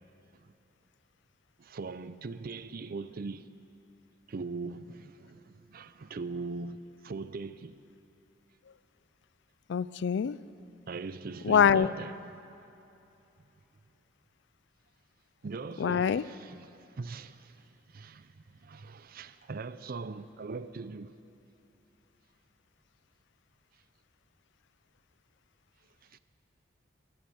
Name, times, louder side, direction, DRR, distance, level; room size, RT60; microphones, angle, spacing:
voice 1, 1.6-3.5 4.3-7.8 10.9-12.1 15.4-21.1 26.1-26.2, right 4 dB, 50° right, 0.5 m, -41 dB
voice 2, 9.7-10.4 11.4-11.9 15.8-16.2, left 7 dB, 65° left, 0.3 m, -24 dB
18.5 x 8.6 x 7.8 m
head